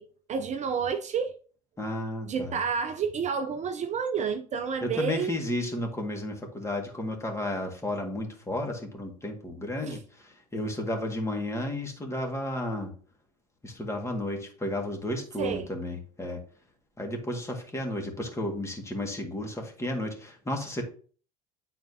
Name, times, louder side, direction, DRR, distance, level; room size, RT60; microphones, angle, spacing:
voice 1, 0.0-1.4 2.3-5.4 9.9-10.0 15.4-15.7, right 6 dB, 35° right, 0.6 m, -30 dB
voice 2, 1.8-2.6 4.8-12.9 13.6-16.4 17.0-20.8, left 1 dB, 15° left, 1.9 m, -33 dB
9.1 x 4.3 x 2.8 m
hypercardioid pair, 80°, 21 cm